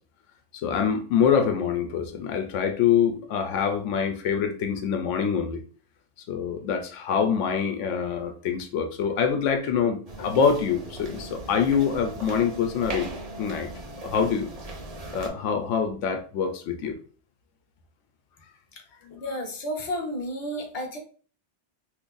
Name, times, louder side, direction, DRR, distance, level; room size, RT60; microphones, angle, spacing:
voice 1, 0.6-5.6 6.3-13.1 13.4-13.7 14.0-14.5 15.1-17.0 19.0-19.2, left 7 dB, 85° left, 5 dB, 0.9 m, -25 dB
sound 1, 10.1-15.3, right 2 dB, 40° right, 0.7 m, -38 dB
voice 2, 19.1-21.0, equal, 35° left, 2 dB, 0.7 m, -32 dB
2.6 x 2.5 x 3.7 m, 0.40 s
omnidirectional pair, 1.2 m